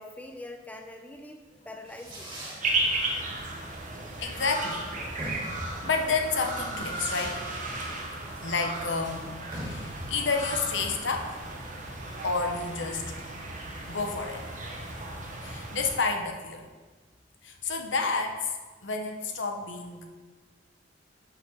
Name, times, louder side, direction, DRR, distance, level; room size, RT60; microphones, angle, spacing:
voice 1, 0.0-2.3 8.2-8.5, left 1 dB, 10° left, 4 dB, 0.6 m, -44 dB
Fireworks, 1.5-13.7, equal, 25° right, 2.0 m, -44 dB
sound 1, 2.6-16.0, right 2 dB, 40° right, 1.1 m, -35 dB
voice 2, 4.2-4.8 5.3-5.6 5.8-7.4 8.4-9.4 9.6-11.4 12.2-13.2 13.9-14.4 15.4-16.7 17.4-18.5 18.8-20.1, left 4 dB, 75° left, 3 dB, 1.0 m, -30 dB
6.0 x 5.7 x 5.7 m, 1.3 s
head